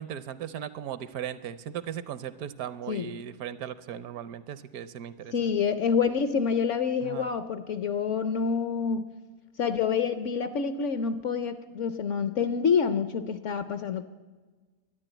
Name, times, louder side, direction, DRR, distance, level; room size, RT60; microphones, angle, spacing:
voice 1, 0.0-5.5 7.0-7.3, right 10 dB, 70° right, 15 dB, 1.0 m, -37 dB
voice 2, 5.3-9.1 9.6-14.1, left 6 dB, 65° left, 12 dB, 0.8 m, -27 dB
12.0 x 10.5 x 8.9 m, 1.3 s
omnidirectional pair, 1.7 m